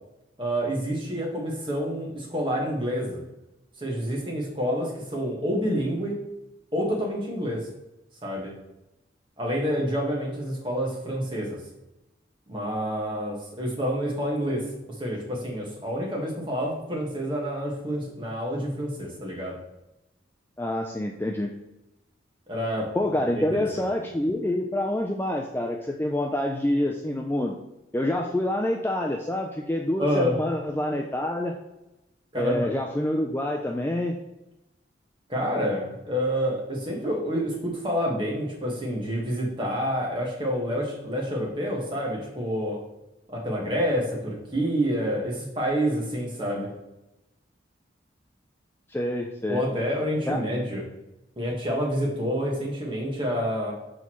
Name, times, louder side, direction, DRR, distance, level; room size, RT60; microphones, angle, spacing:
voice 1, 0.4-3.2 3.8-6.2 6.7-7.6 8.2-8.5 9.4-11.6 12.5-14.6 15.0-19.6 22.5-22.9 23.3-23.6 30.0-30.4 32.3-32.6 35.3-42.8 43.3-46.7 49.5-50.8 51.4-53.7, equal, 25° right, -3 dB, 1.5 m, -28 dB
voice 2, 20.6-21.5 22.9-27.6 27.9-31.6 32.4-34.2 48.9-49.6 50.3-50.4, left 1 dB, 10° left, 1 dB, 0.3 m, -27 dB
6.2 x 5.4 x 3.0 m, 0.93 s
head